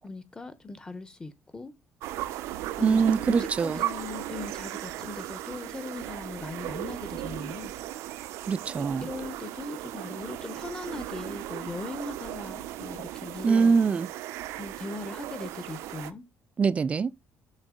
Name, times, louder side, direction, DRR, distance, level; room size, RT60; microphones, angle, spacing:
voice 1, 0.0-1.7 2.8-7.7 8.8-13.8 14.6-16.2, left 3 dB, 15° left, 0.7 m, -39 dB
sound 1, 2.0-16.1, right 14 dB, 85° right, 0.5 m, -37 dB
voice 2, 2.8-3.8 8.5-9.1 13.4-14.1 16.6-17.1, right 5 dB, 25° right, 0.3 m, -23 dB
6.4 x 4.7 x 3.7 m
cardioid pair, 120°, 5 cm